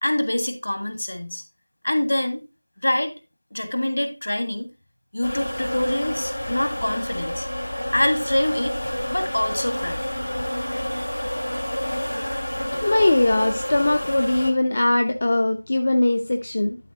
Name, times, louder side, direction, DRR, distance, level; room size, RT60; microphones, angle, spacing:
voice 1, 0.0-1.4 1.8-2.4 2.8-3.1 3.5-4.7 5.1-7.5 7.9-8.8 9.1-10.0, left 1 dB, 55° left, 1.7 m, -25 dB
sound 1, 5.2-14.5, equal, 80° left, 3.1 m, -29 dB
voice 2, 12.8-16.8, left 2 dB, 35° left, 0.7 m, -20 dB
12.0 x 4.0 x 3.7 m
figure-of-eight pair, 170°, 0 cm